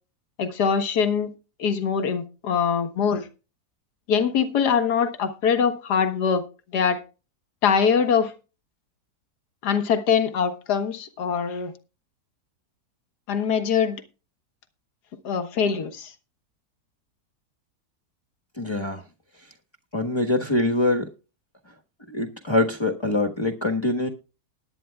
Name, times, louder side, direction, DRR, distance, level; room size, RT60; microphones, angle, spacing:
voice 1, 0.4-1.3 1.6-3.3 4.1-6.4 6.7-7.0 7.6-8.3 9.6-11.7 13.3-14.0 15.2-16.1, left 6 dB, 75° left, 1.8 m, -23 dB
voice 2, 18.6-19.0 19.9-21.0 22.1-24.1, left 2 dB, 20° left, 1.2 m, -24 dB
20.0 x 9.1 x 2.3 m
omnidirectional pair, 1.7 m